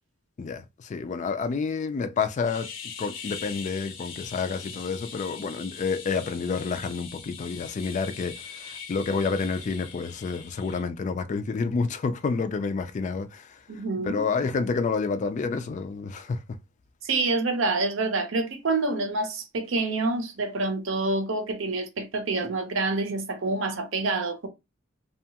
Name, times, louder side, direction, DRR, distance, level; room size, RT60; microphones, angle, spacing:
voice 1, 0.4-2.7 3.0-16.4, left 4 dB, 40° left, 0.3 m, -29 dB
sound 1, 2.5-10.8, left 6 dB, 85° left, 0.6 m, -42 dB
voice 2, 13.7-14.3 17.0-24.5, right 3 dB, 80° right, 0.6 m, -27 dB
2.7 x 2.2 x 2.8 m
head